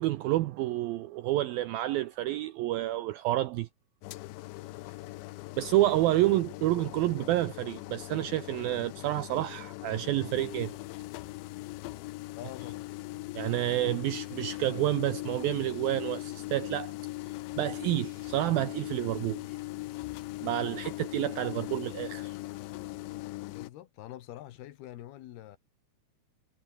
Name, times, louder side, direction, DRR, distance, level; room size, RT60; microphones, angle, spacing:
voice 1, 0.0-3.7 5.6-10.8 13.4-16.9 17.6-19.6 20.4-22.4, right 15 dB, 90° right, 2.1 m, -29 dB
sound 1, 4.0-23.7, left 20 dB, 85° left, 3.0 m, -40 dB
voice 2, 12.3-12.9 23.5-25.6, left 13 dB, 70° left, 2.9 m, -45 dB
omnidirectional pair, 5.2 m